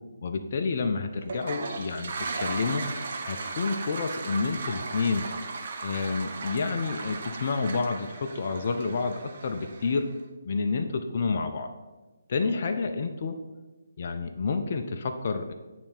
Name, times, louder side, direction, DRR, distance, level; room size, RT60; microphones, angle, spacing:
voice 1, 0.2-2.8 3.2-5.3 5.8-10.1 10.4-11.7 12.3-13.3 14.0-15.5, left 4 dB, 45° left, 5 dB, 0.4 m, -29 dB
Toilet flush, 1.2-10.1, right 4 dB, 50° right, 0.8 m, -36 dB
8.5 x 3.3 x 4.3 m, 1.2 s
figure-of-eight pair, 145°, 0 cm